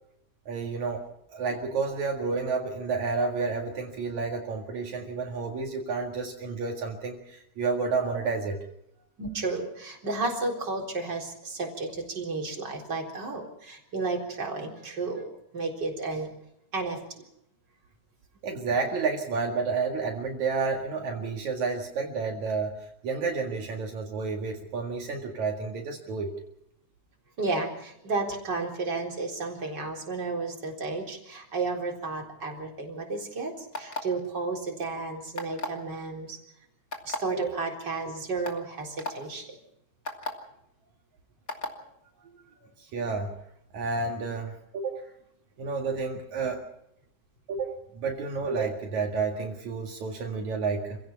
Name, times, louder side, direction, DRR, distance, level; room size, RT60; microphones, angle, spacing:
voice 1, 0.5-8.6 18.4-26.3 37.3-37.6 42.8-43.3 43.7-45.0 45.6-46.6 47.5-51.0, right 4 dB, 70° right, 1 dB, 3.4 m, -30 dB
voice 2, 9.2-16.3 16.7-17.2 27.4-36.4 37.1-39.6, right 3 dB, 35° right, 1 dB, 4.5 m, -32 dB
sound 1, 33.7-34.2 35.4-35.8 36.9-37.2 37.9-38.0 38.4-38.6 39.0-39.1 40.1-40.3 41.5-41.7, left 2 dB, 30° left, 2.8 m, -33 dB
27.5 x 16.5 x 5.8 m, 0.75 s
omnidirectional pair, 3.5 m